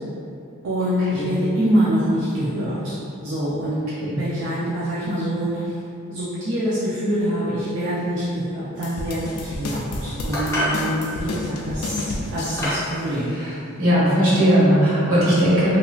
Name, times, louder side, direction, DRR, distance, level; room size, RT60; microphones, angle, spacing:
voice 1, 0.6-3.8 4.1-5.8 6.1-13.4, equal, 60° right, -10 dB, 0.5 m, -25 dB
sound 1, 8.8-13.0, left 2 dB, 90° left, 0.4 m, -31 dB
sound 2, 10.3-10.8 11.8-12.0 12.6-12.9, left 1 dB, 15° left, 0.7 m, -25 dB
voice 2, 13.8-15.8, equal, 85° right, -10 dB, 1.3 m, -18 dB
2.9 x 2.7 x 2.3 m, 2.6 s
head